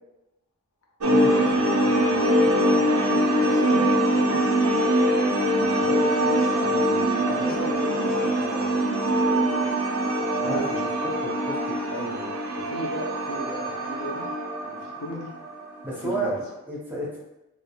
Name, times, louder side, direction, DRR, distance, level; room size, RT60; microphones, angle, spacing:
sound 1, 1.0-15.6, equal, 70° right, 0.5 m, -23 dB
voice 1, 1.3-4.5 5.5-9.7 10.3-10.9 11.9-14.3 14.6-15.3 15.9-16.4, equal, 75° left, -1 dB, 0.6 m, -36 dB
voice 2, 10.4-11.8 15.8-17.2, right 1 dB, 10° right, -5 dB, 0.6 m, -32 dB
3.3 x 2.4 x 2.2 m, 0.94 s
head